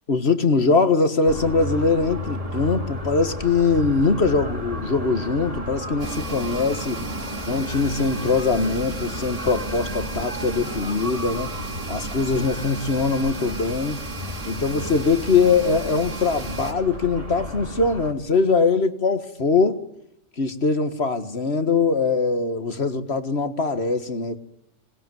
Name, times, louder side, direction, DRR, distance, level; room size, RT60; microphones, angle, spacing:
voice 1, 0.1-7.0 7.5-11.5 11.9-14.0 14.4-19.8 20.4-24.4, left 4 dB, 60° left, 1.9 m, -22 dB
sound 1, 1.2-18.1, left 1 dB, 30° right, 4.4 m, -33 dB
sound 2, 6.0-16.7, right 3 dB, 85° right, 3.0 m, -35 dB
26.5 x 20.0 x 9.3 m
omnidirectional pair, 1.3 m